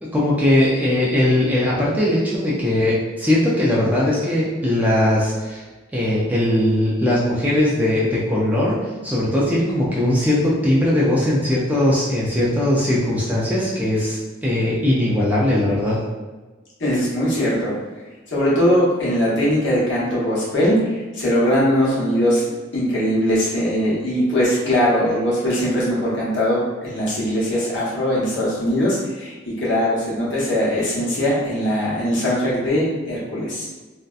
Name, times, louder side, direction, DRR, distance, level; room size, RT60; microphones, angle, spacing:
voice 1, 0.0-5.6 5.9-16.0, left 1 dB, 10° right, -6 dB, 0.3 m, -19 dB
voice 2, 16.8-17.7 18.3-33.7, equal, 65° left, -7 dB, 0.9 m, -20 dB
2.6 x 2.1 x 2.3 m, 1.2 s
head